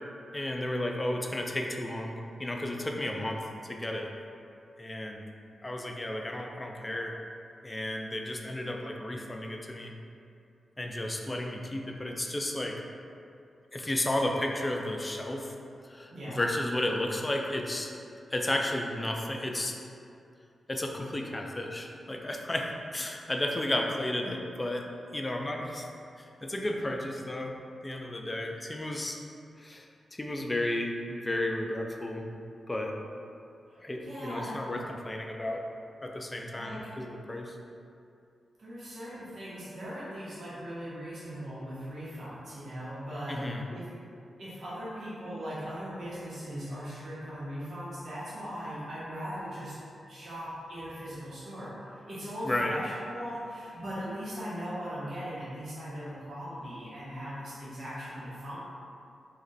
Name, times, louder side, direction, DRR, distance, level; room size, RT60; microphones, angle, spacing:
voice 1, 0.3-4.1 4.8-5.2 5.6-7.2 7.6-9.9 10.8-12.8 13.7-15.5 15.9-17.9 18.3-19.8 20.7-24.9 25.1-25.9 26.2-27.6 27.8-29.2 29.6-29.9 30.1-32.4 32.7-32.9 33.8-35.6 36.0-37.6 43.3-43.6 52.5-52.8, left 1 dB, 25° left, 1 dB, 0.5 m, -33 dB
voice 2, 16.1-16.4 33.7-34.6 36.5-36.9 38.6-43.4 43.7-43.9 44.4-49.8 50.1-58.6, equal, 65° right, -10 dB, 1.0 m, -39 dB
2.9 x 2.5 x 4.0 m, 2.5 s
supercardioid pair, 45°, 0 cm